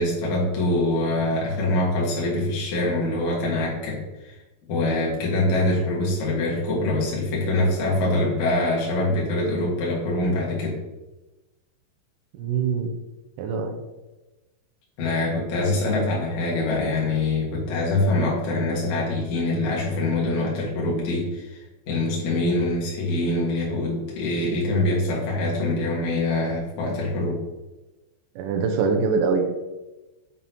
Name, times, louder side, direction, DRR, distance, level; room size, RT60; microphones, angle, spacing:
voice 1, 0.0-4.4 4.7-10.8 15.0-27.4, left 2 dB, 70° left, -4 dB, 1.8 m, -24 dB
voice 2, 12.4-12.9 13.4-13.8 28.4-29.6, right 5 dB, 90° right, 3 dB, 2.5 m, -23 dB
7.6 x 5.5 x 2.8 m, 1.1 s
omnidirectional pair, 5.8 m